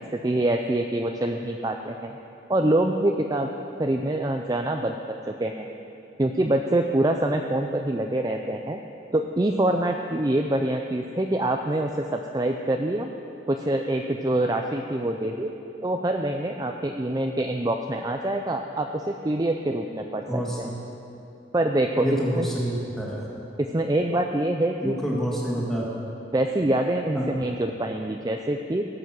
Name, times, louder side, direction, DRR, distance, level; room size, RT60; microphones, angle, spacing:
voice 1, 0.1-2.2 2.5-3.5 3.8-5.0 5.3-5.7 6.2-8.8 9.1-13.1 13.5-15.5 15.8-20.7 21.5-22.5 23.6-25.0 26.3-28.9, right 1 dB, 20° right, 3 dB, 0.4 m, -25 dB
voice 2, 20.3-20.8 22.0-23.3 24.8-25.9 27.1-27.3, equal, ahead, -5 dB, 2.1 m, -28 dB
17.5 x 8.0 x 6.1 m, 2.9 s
head